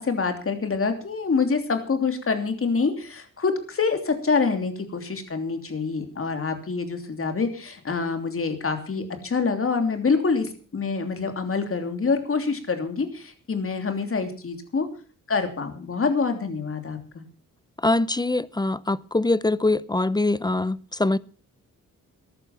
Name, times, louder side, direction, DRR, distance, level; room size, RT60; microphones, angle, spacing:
voice 1, 0.0-14.9 15.3-17.2, left 4 dB, 45° left, 3.1 m, -26 dB
voice 2, 17.8-21.2, left 2 dB, 15° left, 0.6 m, -23 dB
14.5 x 11.5 x 5.8 m
cardioid pair, 85°, 32 cm